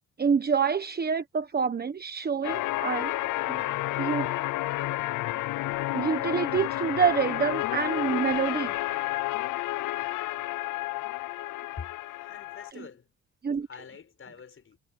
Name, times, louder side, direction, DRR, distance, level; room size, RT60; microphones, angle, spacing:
voice 1, 0.2-3.1 3.5-3.6 4.0-4.3 5.9-8.7 13.4-13.7, right 6 dB, 30° right, 1.3 m, -27 dB
sound 1, 2.4-12.7, left 17 dB, 85° left, 0.7 m, -31 dB
voice 2, 11.8-13.1 13.6-14.8, left 6 dB, 45° left, 6.0 m, -45 dB
cardioid pair, 90°, 30 cm